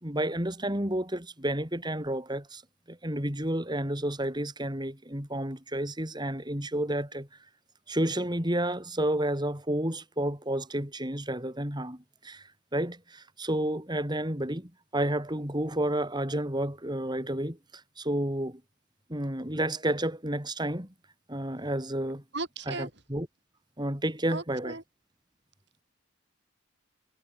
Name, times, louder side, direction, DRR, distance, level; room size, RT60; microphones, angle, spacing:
voice 1, 0.0-2.6 2.9-7.3 7.9-17.6 18.0-18.6 19.1-20.9 21.3-22.2 22.7-23.3 23.8-24.8, right 1 dB, 20° right, 5.1 m, -31 dB
voice 2, 22.3-22.9 24.3-24.8, right 3 dB, 55° right, 5.9 m, -36 dB
head